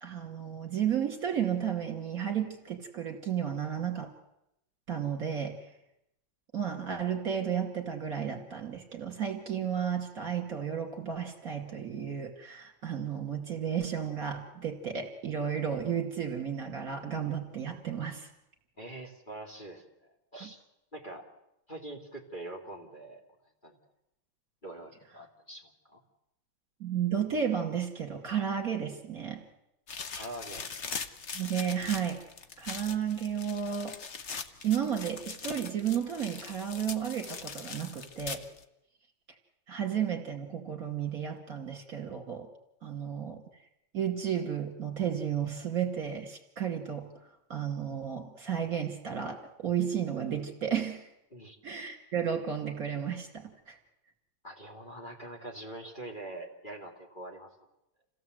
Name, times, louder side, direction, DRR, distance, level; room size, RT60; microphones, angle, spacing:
voice 1, 0.0-4.1 4.9-5.7 6.5-18.3 20.4-20.5 26.8-29.4 31.3-32.2 32.6-34.0 34.6-38.4 39.7-42.5 42.8-43.4 43.9-47.1 47.5-51.1 51.6-53.8, right 8 dB, 45° right, 3 dB, 2.7 m, -33 dB
voice 2, 18.8-19.8 20.3-20.6 20.9-21.3 21.7-23.2 23.6-23.8 24.6-26.0 30.1-30.7 51.3-51.6 54.4-57.5, right 1 dB, 25° left, -1 dB, 2.6 m, -44 dB
sound 1, 29.9-38.6, left 5 dB, 45° left, 1.1 m, -41 dB
28.0 x 16.5 x 7.9 m, 0.85 s
omnidirectional pair, 2.2 m